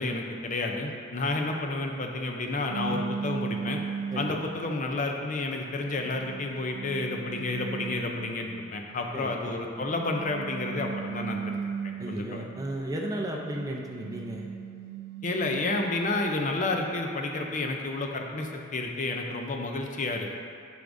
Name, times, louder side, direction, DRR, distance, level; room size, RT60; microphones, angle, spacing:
voice 1, 0.0-3.8 4.2-11.6 12.1-12.4 15.2-20.4, left 2 dB, 40° left, 2 dB, 0.5 m, -30 dB
sound 1, 2.7-4.9 5.5-8.6 9.8-12.7 13.2-16.2, right 5 dB, 85° right, 0.4 m, -37 dB
voice 2, 4.1-4.4 9.1-9.3 12.0-14.5, right 1 dB, 15° right, -1 dB, 0.5 m, -34 dB
8.0 x 4.9 x 2.6 m, 2.3 s
head